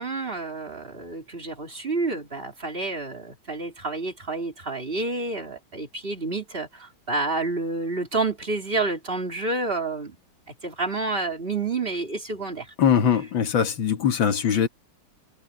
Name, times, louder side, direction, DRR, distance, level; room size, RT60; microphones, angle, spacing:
voice 1, 0.0-10.2 10.6-12.7, right 3 dB, 25° right, 3.2 m, -29 dB
voice 2, 12.8-14.7, left 8 dB, 70° left, 2.4 m, -21 dB
omnidirectional pair, 2.2 m